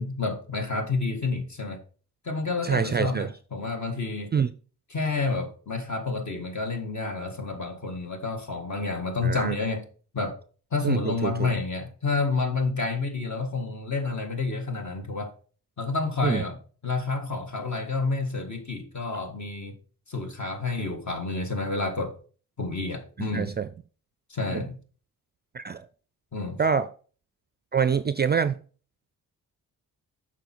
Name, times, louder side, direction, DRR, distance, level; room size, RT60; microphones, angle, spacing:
voice 1, 0.0-1.8 2.2-4.3 4.9-9.8 10.1-10.4 10.7-15.3 15.8-16.6 16.8-19.8 20.1-22.2 22.6-23.5 24.3-24.8 26.3-26.6, left 3 dB, 45° left, 1.8 m, -29 dB
voice 2, 2.6-3.3 4.3-4.5 9.2-9.5 10.8-11.5 16.2-16.4 23.2-23.7 24.5-24.6 25.5-25.9 26.6-26.9 27.7-28.6, right 6 dB, 25° right, 0.4 m, -25 dB
6.9 x 4.4 x 4.5 m
supercardioid pair, 60°, 39 cm